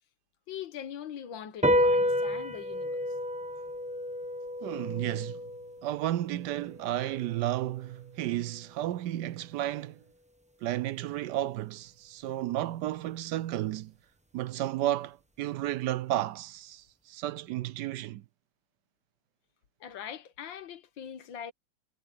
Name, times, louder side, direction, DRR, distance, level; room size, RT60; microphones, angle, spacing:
voice 1, 0.5-3.0 19.8-21.5, left 9 dB, 90° left, 1.9 m, -42 dB
sound 1, 1.6-8.3, equal, 5° right, 0.7 m, -31 dB
voice 2, 4.6-5.4 5.8-10.0 10.6-13.9 14.3-18.2, right 14 dB, 75° right, 1.1 m, -32 dB
omnidirectional pair, 2.0 m